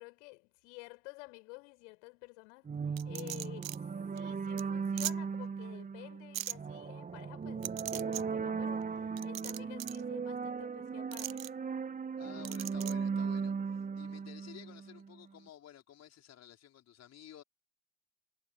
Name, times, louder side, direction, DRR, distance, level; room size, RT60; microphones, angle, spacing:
voice 1, 0.0-2.7 3.0-3.9 4.1-11.4, left 30 dB, 60° left, 7.3 m, -51 dB
sound 1, 2.6-15.2, right 5 dB, 20° right, 1.9 m, -37 dB
sound 2, 3.0-3.8 4.2-4.3 4.6-4.7 5.0-5.1 6.3-6.5 7.6-8.2 9.2-10.0 11.1-11.5 12.4-12.9, right 12 dB, 70° right, 1.0 m, -39 dB
voice 2, 12.2-17.4, left 11 dB, 40° left, 5.3 m, -53 dB
figure-of-eight pair, 65°, 41 cm